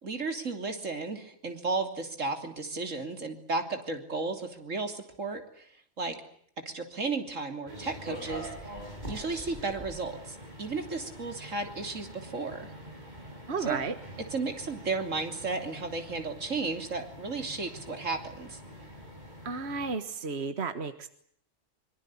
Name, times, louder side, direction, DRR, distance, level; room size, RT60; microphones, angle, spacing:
voice 1, 0.0-5.7 6.0-6.2 6.7-8.5 9.1-12.7 13.7-13.8 14.3-18.6, right 3 dB, 85° right, 6 dB, 3.5 m, -34 dB
sound 1, 7.7-20.0, right 1 dB, 35° right, 6.8 m, -45 dB
voice 2, 13.5-13.9 19.4-21.1, right 4 dB, 60° right, 9 dB, 1.8 m, -33 dB
24.5 x 24.0 x 8.4 m, 0.64 s
omnidirectional pair, 1.3 m